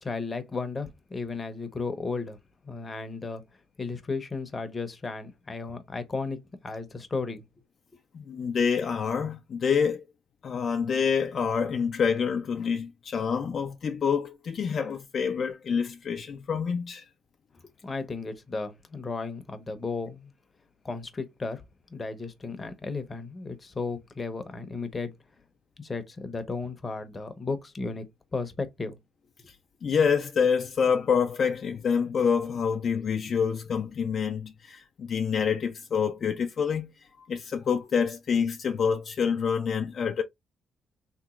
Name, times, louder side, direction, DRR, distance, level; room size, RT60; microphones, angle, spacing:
voice 1, 0.0-2.4 2.6-3.4 3.8-7.4 17.8-20.3 20.8-21.6 21.9-25.1 25.8-28.0 28.3-29.0, left 4 dB, 30° left, 0.8 m, -34 dB
voice 2, 8.1-10.0 10.4-17.1 29.8-36.9 37.2-40.2, left 6 dB, 50° left, 0.4 m, -27 dB
3.4 x 2.9 x 2.4 m
cardioid pair, 90°, 0 cm